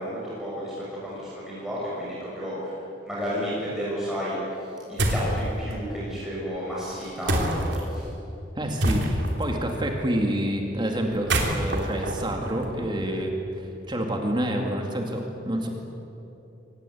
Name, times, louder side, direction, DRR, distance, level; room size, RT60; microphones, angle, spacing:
voice 1, 0.0-8.1, equal, 5° right, -8 dB, 6.7 m, -32 dB
sound 1, 5.0-5.4 7.3-7.8 8.8-9.4 11.1-13.1, right 1 dB, 75° right, 3.4 m, -26 dB
voice 2, 8.6-15.7, right 1 dB, 25° right, 2 dB, 2.4 m, -28 dB
25.0 x 19.5 x 8.6 m, 3.0 s
head